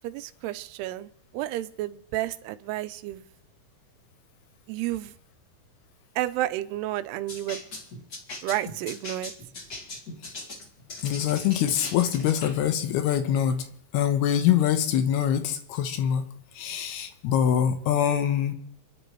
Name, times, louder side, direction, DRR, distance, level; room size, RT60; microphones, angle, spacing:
voice 1, 0.0-3.3 4.7-5.1 6.2-7.6 8.4-9.3, right 14 dB, 90° right, 12 dB, 2.7 m, -31 dB
sound 1, 7.3-12.6, left 2 dB, 35° left, 1.5 m, -40 dB
voice 2, 11.0-13.7 13.9-16.3 16.6-18.5, left 9 dB, 85° left, 8 dB, 2.9 m, -24 dB
29.5 x 10.0 x 3.1 m, 0.70 s
omnidirectional pair, 4.6 m